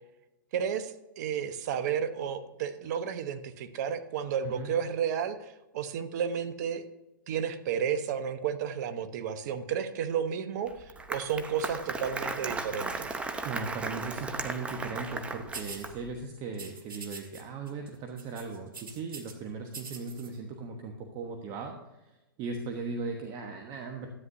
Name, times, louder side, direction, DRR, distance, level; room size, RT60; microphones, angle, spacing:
voice 1, 0.5-6.8 7.3-13.2, right 8 dB, 50° right, 10 dB, 1.0 m, -32 dB
Applause, 10.7-16.2, right 3 dB, 10° right, 0.8 m, -36 dB
voice 2, 13.4-21.8 22.4-24.1, right 4 dB, 35° right, 3 dB, 1.3 m, -38 dB
sound 1, 15.5-15.9 16.5-17.4 17.7-17.9 18.2-19.3 19.7-20.3, right 4 dB, 85° right, 2.2 m, -43 dB
13.0 x 9.4 x 2.7 m, 1.0 s
hypercardioid pair, 130°, 11 cm